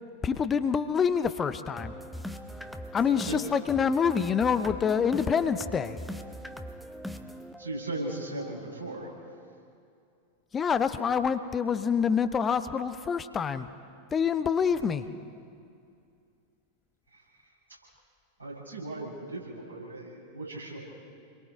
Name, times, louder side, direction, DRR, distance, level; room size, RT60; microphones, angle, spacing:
voice 1, 0.2-1.9 2.9-6.0 10.5-13.7 14.1-15.0, left 6 dB, 20° left, 11 dB, 0.8 m, -26 dB
sound 1, 1.8-9.7, equal, ahead, 1.1 m, -41 dB
voice 2, 3.1-3.4 7.6-9.1 17.1-17.5 18.4-20.8, right 2 dB, 85° right, -5 dB, 7.2 m, -38 dB
30.0 x 22.5 x 4.5 m, 2.4 s
figure-of-eight pair, 90°, 0 cm